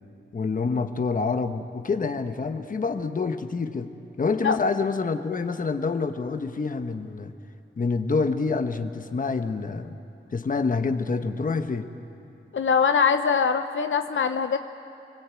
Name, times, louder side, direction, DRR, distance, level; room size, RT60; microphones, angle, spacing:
voice 1, 0.3-3.9 4.2-7.3 7.8-10.0 10.3-11.9, left 4 dB, 40° left, 8 dB, 1.2 m, -27 dB
voice 2, 12.5-14.6, left 6 dB, 70° left, 8 dB, 0.8 m, -22 dB
29.5 x 21.5 x 8.4 m, 2.8 s
wide cardioid pair, 145°, 21 cm